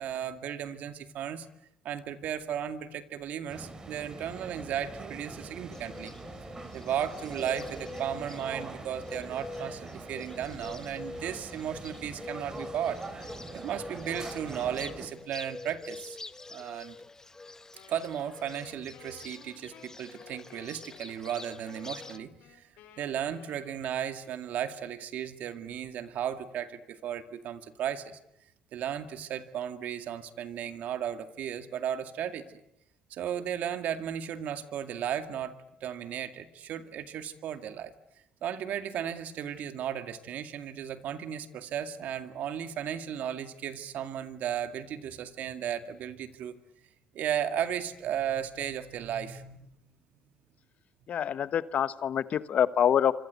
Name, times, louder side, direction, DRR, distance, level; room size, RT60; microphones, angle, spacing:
voice 1, 0.0-1.5 1.8-6.1 6.7-13.0 13.5-16.2 16.5-17.0 17.9-22.7 23.0-28.2 28.7-32.6 33.1-37.9 38.4-46.6 47.1-49.6, right 9 dB, 60° right, 9 dB, 2.1 m, -35 dB
sound 1, 3.5-15.1, right 3 dB, 25° right, 4.3 m, -43 dB
Bird, 5.7-22.2, left 3 dB, 20° left, 1.2 m, -46 dB
Wind instrument woodwind instrument, 17.7-24.6, left 9 dB, 75° left, 5.1 m, -56 dB
voice 2, 51.1-53.1, left 9 dB, 50° left, 15 dB, 1.1 m, -26 dB
26.5 x 25.5 x 8.3 m, 0.82 s
supercardioid pair, 85°, 3 cm